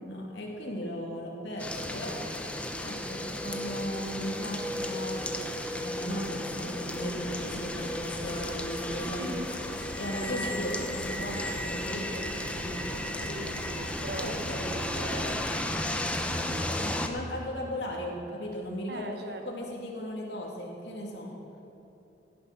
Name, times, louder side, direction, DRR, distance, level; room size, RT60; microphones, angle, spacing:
voice 1, 0.0-2.5 2.8-9.2 9.9-13.0 13.4-13.5 14.1-14.6 17.0-19.2 19.4-21.3, equal, 70° left, -2 dB, 2.8 m, -37 dB
sound 1, 1.6-17.1, left 1 dB, 5° left, 0.8 m, -34 dB
sound 2, 5.9-15.8, equal, 30° right, 3.7 m, -46 dB
sound 3, 6.9-11.8, left 1 dB, 25° left, 3.1 m, -45 dB
voice 2, 9.2-9.5 13.2-15.5 16.2-16.9 18.9-19.5, right 1 dB, 60° right, 5 dB, 1.2 m, -40 dB
16.5 x 9.8 x 6.1 m, 3.0 s
head